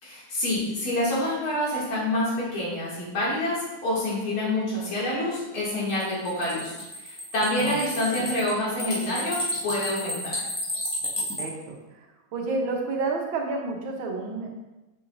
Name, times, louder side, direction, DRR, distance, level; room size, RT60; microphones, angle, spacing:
voice 1, 0.0-10.3, left 1 dB, 75° left, -7 dB, 3.1 m, -27 dB
sound 1, 5.9-11.4, left 1 dB, 15° left, 1.0 m, -32 dB
voice 2, 11.4-12.1 12.3-14.5, right 3 dB, 70° right, 1 dB, 1.7 m, -30 dB
7.0 x 6.1 x 2.6 m, 1.0 s
omnidirectional pair, 2.3 m